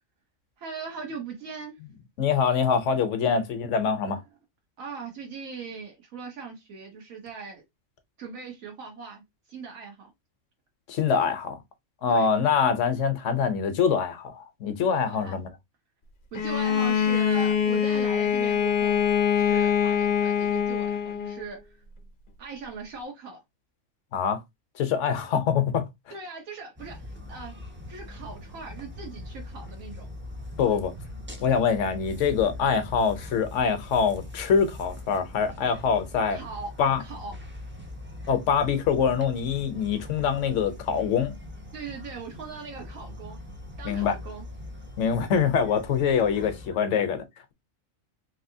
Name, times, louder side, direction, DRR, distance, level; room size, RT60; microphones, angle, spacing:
voice 1, 0.6-1.8 3.2-3.4 4.8-7.6 8.2-10.1 12.1-12.3 15.0-15.4 16.3-19.0 19.4-21.8 22.4-23.4 26.1-27.5 27.9-30.1 36.3-36.7 37.0-37.3 41.7-43.4 43.8-44.5 46.4-46.8, right 5 dB, 85° right, 1.4 m, -40 dB
voice 2, 2.2-4.2 10.9-11.6 12.0-15.5 24.1-24.4 24.8-25.9 30.6-30.9 31.4-36.4 36.8-37.0 38.3-41.3 43.8-44.1 45.0-47.2, left 6 dB, 70° left, 1.0 m, -24 dB
Bowed string instrument, 16.3-21.5, left 8 dB, 50° left, 0.6 m, -24 dB
sound 1, 26.8-46.7, left 1 dB, 20° right, 0.3 m, -41 dB
3.3 x 2.7 x 2.6 m
omnidirectional pair, 1.4 m